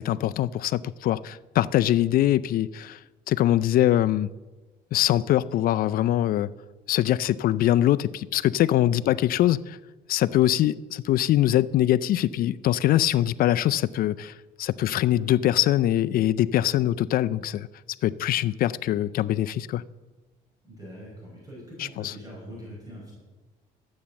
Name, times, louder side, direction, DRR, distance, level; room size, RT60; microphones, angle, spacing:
voice 1, 0.0-3.0 3.3-4.3 4.9-6.5 6.9-9.8 10.1-17.7 18.0-19.8 21.8-22.1, left 13 dB, 60° left, 0.4 m, -23 dB
voice 2, 20.6-23.1, equal, 20° right, 5.2 m, -43 dB
12.0 x 8.6 x 7.0 m
cardioid pair, 110°, 17 cm